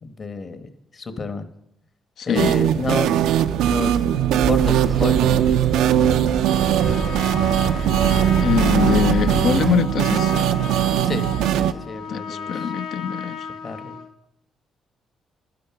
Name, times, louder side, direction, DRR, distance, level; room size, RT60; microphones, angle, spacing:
voice 1, 0.0-1.4 2.3-3.2 3.6-5.5 11.0-11.3 11.5-12.7 13.6-14.0, left 4 dB, 40° left, 1.3 m, -31 dB
voice 2, 2.2-2.5 8.4-10.4 12.1-13.5, left 8 dB, 70° left, 0.7 m, -23 dB
sound 1, 2.4-11.7, right 10 dB, 90° right, 0.5 m, -20 dB
sound 2, 4.4-9.8, right 4 dB, 30° right, 0.5 m, -27 dB
Trumpet, 6.5-14.1, left 5 dB, 85° left, 1.0 m, -34 dB
12.0 x 10.0 x 5.9 m
cardioid pair, 90°, 0 cm